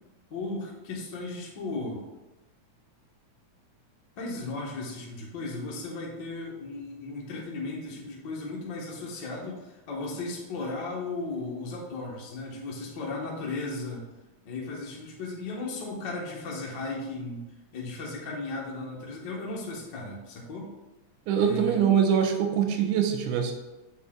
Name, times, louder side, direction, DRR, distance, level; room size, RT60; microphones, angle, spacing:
voice 1, 0.3-2.0 4.2-14.0 14.4-17.4 17.7-20.7 21.4-21.8, left 2 dB, 50° left, -3 dB, 1.4 m, -36 dB
voice 2, 21.3-23.5, right 8 dB, 85° right, 4 dB, 2.3 m, -23 dB
7.6 x 4.1 x 3.8 m, 1.1 s
omnidirectional pair, 3.5 m